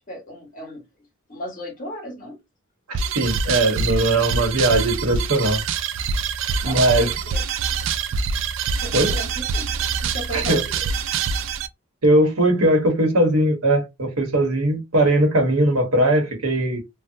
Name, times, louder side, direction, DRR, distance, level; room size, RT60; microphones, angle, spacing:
voice 1, 0.1-0.8 1.3-2.4 6.6-7.1 8.8-10.9, equal, 40° left, 1.5 m, -35 dB
sound 1, 2.9-11.7, right 5 dB, 65° right, 0.3 m, -25 dB
voice 2, 2.9-5.6 6.6-7.1 8.9-9.1 10.3-10.6 12.0-16.8, right 1 dB, 90° right, 1.1 m, -19 dB
3.3 x 2.1 x 2.7 m
head